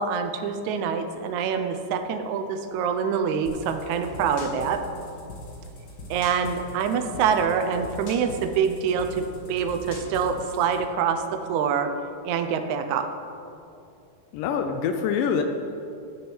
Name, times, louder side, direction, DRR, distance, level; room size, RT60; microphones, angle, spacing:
voice 1, 0.0-4.8 6.1-11.9 12.2-13.1, right 6 dB, 75° right, 8 dB, 1.9 m, -25 dB
sound 1, 3.5-10.8, left 1 dB, 50° left, 1.7 m, -41 dB
voice 2, 14.3-15.4, left 7 dB, 85° left, 6 dB, 2.3 m, -25 dB
9.3 x 8.6 x 6.1 m, 2.6 s
omnidirectional pair, 3.8 m